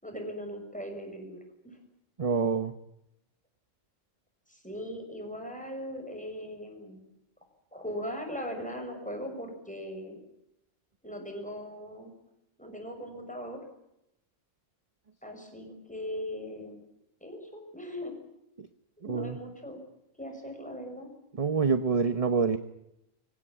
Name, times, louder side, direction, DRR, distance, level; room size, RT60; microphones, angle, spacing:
voice 1, 0.0-1.8 4.5-7.0 7.7-10.2 11.0-12.1 12.6-13.6 15.2-16.8 17.2-18.1 19.0-19.8 20.2-21.1, equal, 5° left, 3 dB, 6.5 m, -39 dB
voice 2, 2.2-2.7 12.6-12.7 18.6-18.7 19.0-19.4 21.3-22.6, right 5 dB, 30° right, 11 dB, 0.9 m, -27 dB
25.0 x 17.0 x 9.9 m, 0.83 s
omnidirectional pair, 1.3 m